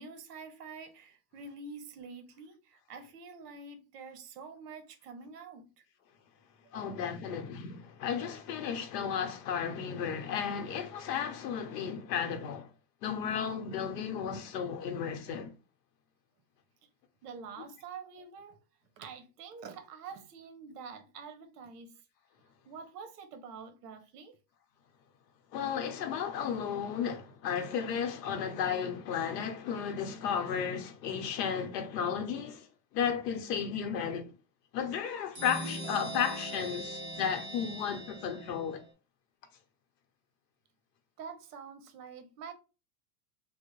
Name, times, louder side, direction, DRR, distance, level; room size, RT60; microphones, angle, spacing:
voice 1, 0.0-5.7 6.7-6.9 17.2-18.6 19.0-22.0 22.6-24.3 41.2-42.5, right 5 dB, 65° right, 0.9 m, -47 dB
voice 2, 6.7-12.7 13.0-15.5 25.5-32.7 32.9-34.3 34.7-38.8, left 7 dB, 75° left, 0.9 m, -34 dB
sound 1, 35.3-38.9, right 1 dB, 15° right, 0.8 m, -41 dB
3.3 x 2.1 x 3.1 m
supercardioid pair, 175°, 49 cm